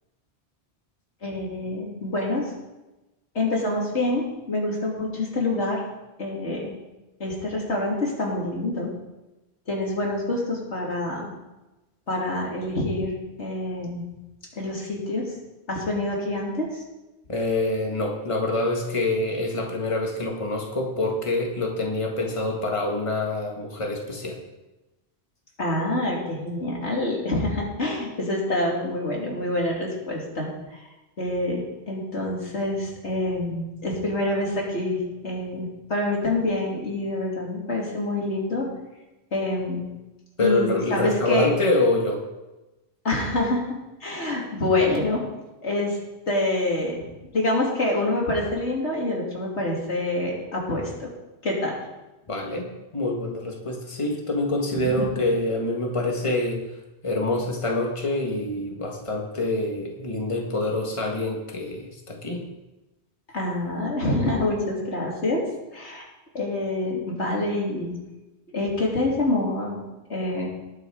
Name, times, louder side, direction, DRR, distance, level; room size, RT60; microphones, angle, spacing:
voice 1, 1.2-2.5 3.3-5.8 6.2-6.7 7.2-8.9 9.7-11.3 12.1-14.0 14.5-15.3 15.7-16.8 25.6-30.9 31.2-38.7 39.3-39.8 40.4-41.5 43.0-43.6 44.0-45.2 45.6-46.0 46.3-47.1 47.3-51.1 51.4-51.8 54.8-55.1 63.3-65.4 65.7-66.1 66.3-67.9 68.5-70.5, left 2 dB, 90° left, -2 dB, 3.2 m, -26 dB
voice 2, 17.3-24.4 40.4-42.2 52.3-56.6 57.0-62.4, left 2 dB, 30° left, 0 dB, 1.8 m, -26 dB
19.0 x 6.6 x 4.9 m, 1.0 s
omnidirectional pair, 1.1 m